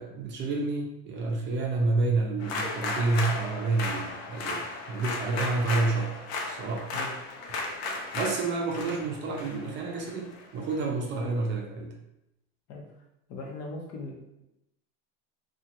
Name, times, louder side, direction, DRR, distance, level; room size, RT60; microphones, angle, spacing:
voice 1, 0.0-6.1 6.4-6.9 8.1-11.9, right 3 dB, 35° right, 0 dB, 0.6 m, -29 dB
sound 1, 2.4-10.8, left 3 dB, 75° left, 0.7 m, -35 dB
voice 2, 13.3-14.1, left 2 dB, 45° left, 0 dB, 0.8 m, -38 dB
2.8 x 2.4 x 2.8 m, 0.85 s
supercardioid pair, 135°, 32 cm